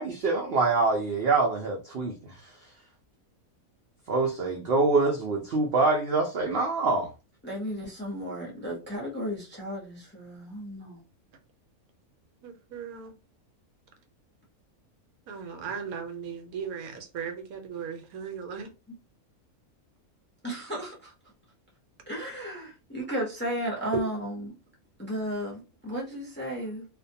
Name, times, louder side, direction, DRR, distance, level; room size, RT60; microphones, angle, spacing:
voice 1, 0.0-2.5 4.1-7.1, right 3 dB, 60° right, 0.6 m, -25 dB
voice 2, 7.4-11.0 20.4-21.1 22.1-24.5 25.0-26.9, equal, 10° left, 0.5 m, -34 dB
voice 3, 12.4-13.1 15.3-18.7 23.9-24.0, right 6 dB, 80° right, 1.1 m, -36 dB
2.4 x 2.2 x 2.7 m
omnidirectional pair, 1.5 m